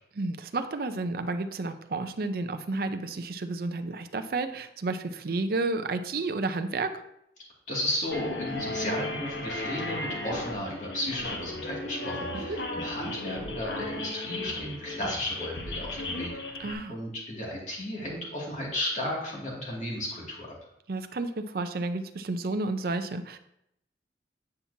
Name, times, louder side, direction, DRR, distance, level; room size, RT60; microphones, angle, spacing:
voice 1, 0.2-6.9 12.3-12.6 16.6-17.0 20.9-23.4, right 3 dB, 55° right, 8 dB, 0.5 m, -31 dB
voice 2, 7.7-16.3 16.9-20.5, left 1 dB, 45° left, -4 dB, 2.3 m, -34 dB
sound 1, 8.1-16.7, left 2 dB, 85° left, 1.0 m, -35 dB
8.7 x 5.8 x 2.7 m, 0.79 s
head